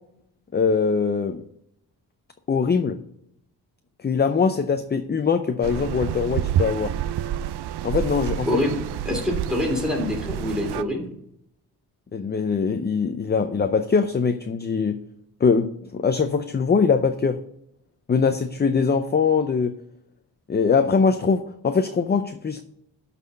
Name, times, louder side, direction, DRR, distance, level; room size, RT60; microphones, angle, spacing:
voice 1, 0.5-1.5 2.5-3.0 4.0-7.0 7.8-8.6 12.1-15.0 15.4-17.4 18.1-19.8 20.5-22.6, left 5 dB, 25° left, 8 dB, 0.5 m, -22 dB
sound 1, 5.6-10.8, right 10 dB, 85° right, 0.6 m, -28 dB
voice 2, 8.4-8.8 9.0-11.1, left 1 dB, ahead, 0 dB, 2.6 m, -25 dB
12.5 x 4.2 x 6.6 m, 0.76 s
wide cardioid pair, 120°, 39 cm